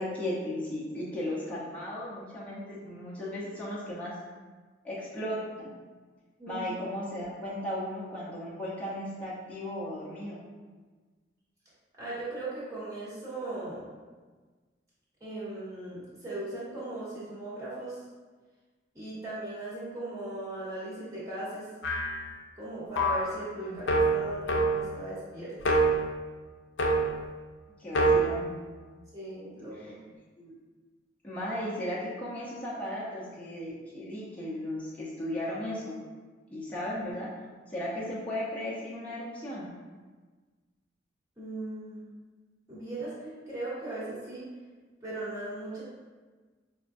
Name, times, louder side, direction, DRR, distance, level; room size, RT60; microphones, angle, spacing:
voice 1, 0.0-4.1 4.8-5.7 6.5-10.4 23.6-24.2 27.8-28.5 29.7-29.9 30.4-30.5 31.2-36.0 36.5-37.3 37.7-39.7, left 1 dB, 10° left, -8 dB, 0.6 m, -36 dB
voice 2, 12.0-13.9 15.2-18.0 18.9-21.7 22.6-25.7 29.1-30.0 41.4-42.0 42.7-44.4 45.0-45.8, right 2 dB, 20° right, -9 dB, 1.1 m, -38 dB
sound 1, 21.8-22.3 23.0-23.3 23.9-25.0 25.6-26.1 26.8-27.3 28.0-28.2, right 2 dB, 70° left, 0.4 m, -25 dB
4.9 x 2.1 x 2.6 m, 1.4 s
head